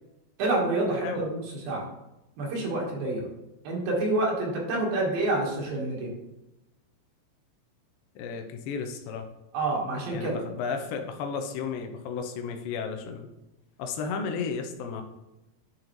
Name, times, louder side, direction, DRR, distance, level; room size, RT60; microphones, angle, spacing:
voice 1, 0.4-1.4 1.7-1.8 2.4-3.3 3.6-6.1 9.5-10.4, right 2 dB, 80° right, -2 dB, 3.2 m, -27 dB
voice 2, 0.9-1.3 8.2-9.3 10.1-13.3 13.8-15.0, left 5 dB, 90° left, 4 dB, 2.4 m, -33 dB
11.0 x 3.8 x 3.0 m, 0.94 s
omnidirectional pair, 4.1 m